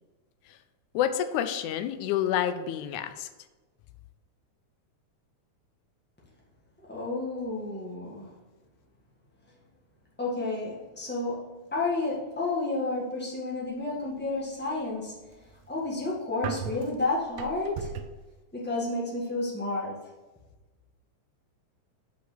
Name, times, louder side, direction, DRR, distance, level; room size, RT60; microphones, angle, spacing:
voice 1, 0.9-3.3, left 10 dB, 80° left, 10 dB, 1.9 m, -28 dB
voice 2, 6.8-8.4 10.2-15.4 15.7-17.9 18.5-20.0, left 2 dB, 10° left, -5 dB, 0.6 m, -31 dB
sound 1, 15.1-18.3, right 7 dB, 75° right, 1.8 m, -38 dB
6.5 x 5.5 x 6.2 m, 1.2 s
omnidirectional pair, 3.5 m